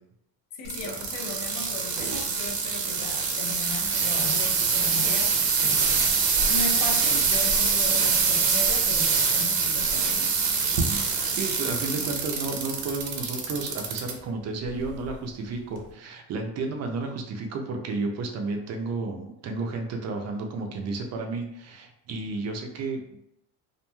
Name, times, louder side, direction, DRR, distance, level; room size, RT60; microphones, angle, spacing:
voice 1, 0.5-10.3, left 3 dB, 55° left, 2 dB, 0.6 m, -37 dB
sound 1, 0.6-14.1 14.6-15.1 15.8-15.9, right 5 dB, 75° right, 0.7 m, -24 dB
voice 2, 11.3-23.2, right 3 dB, 40° right, 3 dB, 0.4 m, -32 dB
3.0 x 2.4 x 2.2 m, 0.76 s
cardioid pair, 145°, 42 cm